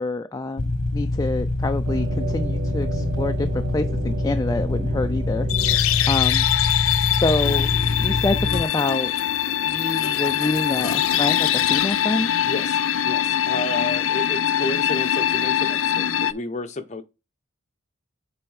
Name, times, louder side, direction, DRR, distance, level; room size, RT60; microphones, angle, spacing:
voice 1, 0.0-3.5 3.7-5.8 6.1-6.5 6.8-7.7 8.0-9.1 9.6-12.3, left 2 dB, 15° left, 0.3 m, -27 dB
sound 1, 0.6-8.6, left 2 dB, 55° left, 1.1 m, -25 dB
sound 2, 1.8-6.6, right 5 dB, 50° right, 0.4 m, -34 dB
sound 3, 5.5-16.3, left 11 dB, 80° left, 0.5 m, -22 dB
voice 2, 12.4-17.0, left 2 dB, 35° left, 0.8 m, -31 dB
7.5 x 3.5 x 4.8 m
head